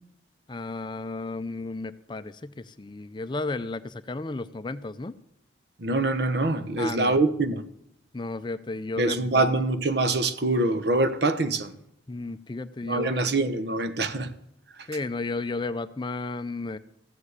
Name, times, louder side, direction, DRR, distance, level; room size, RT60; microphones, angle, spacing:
voice 1, 0.5-5.1 6.8-7.2 8.1-9.5 12.1-13.3 14.9-16.8, left 3 dB, 25° left, 0.4 m, -33 dB
voice 2, 5.8-7.6 9.0-11.7 12.8-14.3, right 2 dB, 60° right, 1.0 m, -24 dB
14.5 x 7.4 x 8.1 m
head